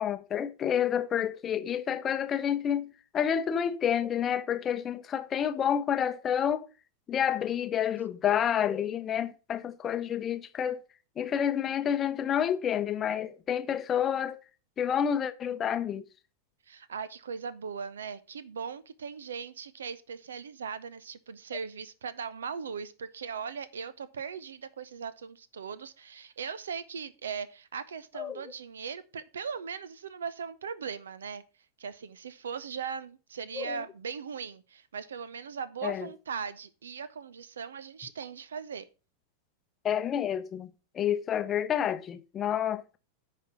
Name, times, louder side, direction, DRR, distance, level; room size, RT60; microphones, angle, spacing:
voice 1, 0.0-6.7 7.1-10.9 11.2-14.4 14.8-16.0 28.2-28.4 33.5-33.8 35.8-36.1 39.8-43.0, left 9 dB, 25° left, 0.7 m, -29 dB
voice 2, 16.7-31.4 31.8-38.9, right 6 dB, 65° right, 0.7 m, -39 dB
10.0 x 4.2 x 5.9 m
figure-of-eight pair, 90°, 0 cm